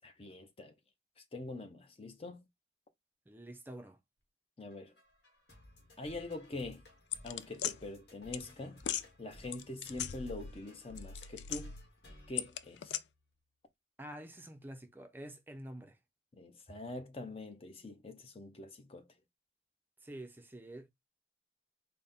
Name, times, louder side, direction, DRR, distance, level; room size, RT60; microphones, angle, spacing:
voice 1, 0.0-0.7 1.2-2.5 4.6-4.9 6.0-6.8 7.2-8.8 9.2-11.7 12.3-13.0 16.3-19.1, left 2 dB, 35° left, 0.6 m, -44 dB
voice 2, 3.3-4.0 14.0-16.0 20.0-20.9, right 1 dB, 10° right, 0.4 m, -48 dB
sound 1, 4.7-13.3, left 1 dB, 70° left, 1.3 m, -58 dB
sound 2, 7.1-7.7 8.3-8.4 8.8-9.0 9.5-10.6 10.9-11.9 12.4-13.0, left 10 dB, 85° left, 0.4 m, -38 dB
4.0 x 2.1 x 3.4 m
head